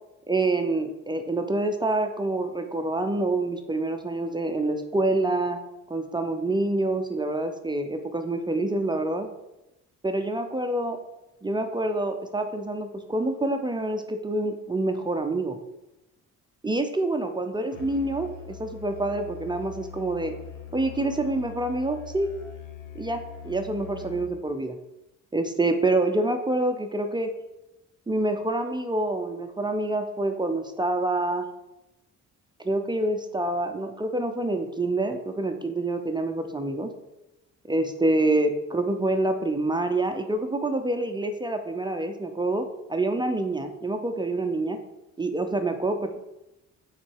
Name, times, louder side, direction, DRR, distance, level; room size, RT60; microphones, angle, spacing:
voice 1, 0.3-5.6 5.9-9.3 10.0-11.0 11.4-15.6 16.6-20.3 20.7-22.4 22.9-24.8 25.3-27.3 28.1-31.5 32.6-36.9 37.7-44.8 45.2-46.2, right 2 dB, 15° right, 6 dB, 0.6 m, -27 dB
Musical instrument, 17.7-24.5, left 7 dB, 85° left, 1.0 m, -42 dB
6.2 x 4.0 x 4.6 m, 0.94 s
cardioid pair, 90°, 30 cm